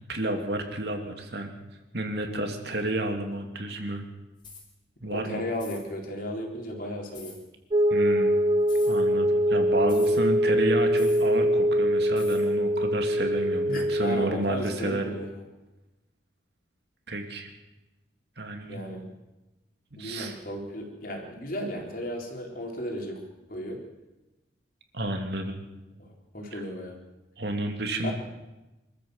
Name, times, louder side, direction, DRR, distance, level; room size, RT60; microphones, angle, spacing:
voice 1, 0.1-1.5 1.9-4.0 5.0-5.4 7.9-8.4 8.9-15.1 17.1-17.5 18.4-18.8 19.9-20.4 24.9-25.6 26.5-26.6 27.4-28.1, right 1 dB, 55° right, 4 dB, 2.8 m, -31 dB
sound 1, 4.4-4.7 5.5-5.9 7.1-7.4 8.6-9.0 9.9-10.2 11.0-11.3 12.2-12.5, left 4 dB, 25° left, 4.6 m, -46 dB
voice 2, 5.0-7.4 13.7-15.3 18.7-19.0 20.0-23.2 23.5-23.8 26.0-26.9 28.0-28.1, equal, 45° left, 1 dB, 4.2 m, -35 dB
sound 2, 7.7-14.3, equal, 25° right, 0.8 m, -23 dB
25.5 x 14.0 x 8.1 m, 1.0 s
head